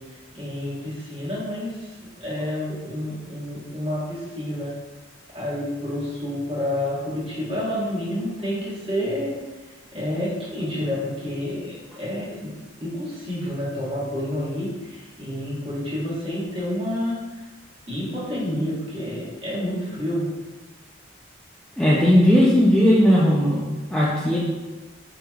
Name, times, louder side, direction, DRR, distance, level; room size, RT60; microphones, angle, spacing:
voice 1, 0.3-4.7 5.3-9.3 9.9-12.5 12.8-17.4 17.9-20.3, left 1 dB, 30° right, -8 dB, 1.3 m, -29 dB
voice 2, 21.8-24.4, equal, 5° left, -7 dB, 0.3 m, -17 dB
5.0 x 2.9 x 2.3 m, 1.2 s
head